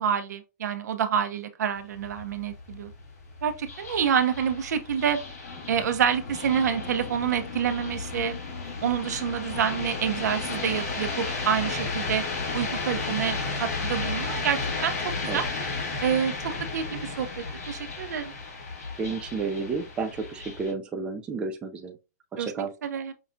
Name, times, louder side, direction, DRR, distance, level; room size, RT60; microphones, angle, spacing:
voice 1, 0.0-2.9 3.4-5.2 5.7-8.4 8.8-12.2 12.5-15.4 16.0-18.3 22.4-23.1, right 8 dB, 75° right, 0.7 m, -28 dB
sound 1, 1.7-20.7, left 3 dB, 65° left, 1.6 m, -34 dB
voice 2, 19.0-21.9 22.3-22.7, right 4 dB, 10° right, 0.4 m, -31 dB
5.5 x 2.3 x 2.5 m
hypercardioid pair, 160°, 9 cm